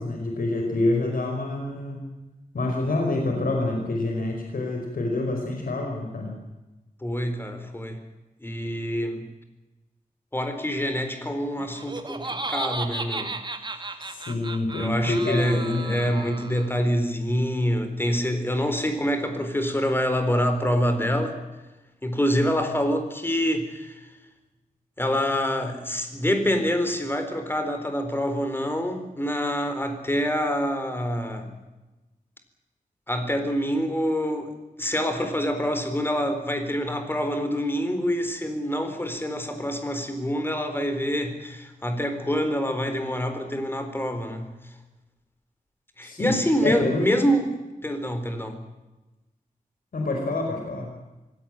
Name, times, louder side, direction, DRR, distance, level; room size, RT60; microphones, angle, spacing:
voice 1, 0.0-2.1 2.5-6.3 14.0-16.1 46.0-47.0 49.9-50.9, left 2 dB, 70° left, 2 dB, 5.0 m, -27 dB
voice 2, 7.0-8.0 8.4-9.2 10.3-13.3 14.8-21.4 22.0-24.1 25.0-31.5 33.1-34.5 34.8-44.5 46.0-47.5 47.8-48.6, equal, 15° left, 7 dB, 4.1 m, -26 dB
Laughter, 11.6-16.8, right 2 dB, 30° right, 2.0 m, -34 dB
25.5 x 17.0 x 9.1 m, 1.1 s
wide cardioid pair, 135°, 15 cm